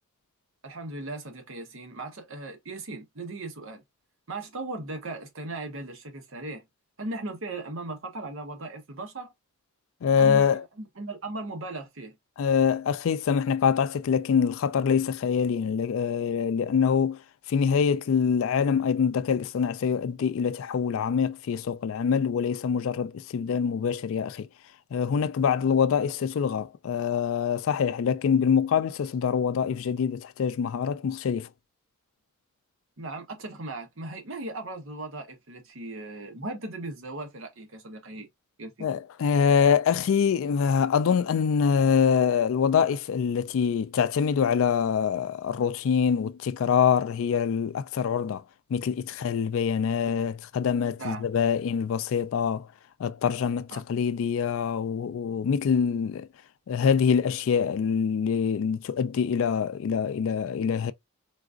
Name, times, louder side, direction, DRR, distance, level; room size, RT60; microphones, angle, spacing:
voice 1, 0.6-3.8 4.3-6.6 7.0-9.3 10.2-12.1 33.0-38.3 38.6-38.9 51.0-51.3 53.7-53.8, right 2 dB, 60° right, 0.9 m, -37 dB
voice 2, 10.0-10.6 12.4-17.2 17.5-24.5 24.9-31.5 38.8-48.4 48.7-52.7 53.0-56.3 56.7-60.9, left 7 dB, 65° left, 0.3 m, -25 dB
3.8 x 2.5 x 2.4 m
head